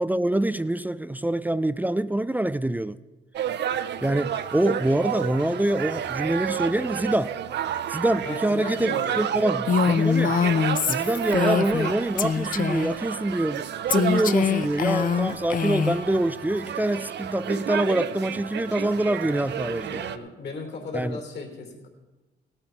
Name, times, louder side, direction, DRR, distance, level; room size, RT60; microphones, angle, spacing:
voice 1, 0.0-3.0 4.0-7.3 7.9-10.4 10.9-20.1 20.9-21.2, right 1 dB, 10° right, 15 dB, 0.3 m, -25 dB
sound 1, 3.3-20.2, right 10 dB, 60° right, 0.6 m, -31 dB
voice 2, 8.2-9.8 19.9-21.9, left 3 dB, 60° left, 2 dB, 3.0 m, -36 dB
Female speech woman speaking, 9.7-11.9 12.2-12.9 13.9-16.0, left 6 dB, 45° left, 0.5 m, -24 dB
17.0 x 9.0 x 4.5 m, 1.2 s
cardioid pair, 90°, 20 cm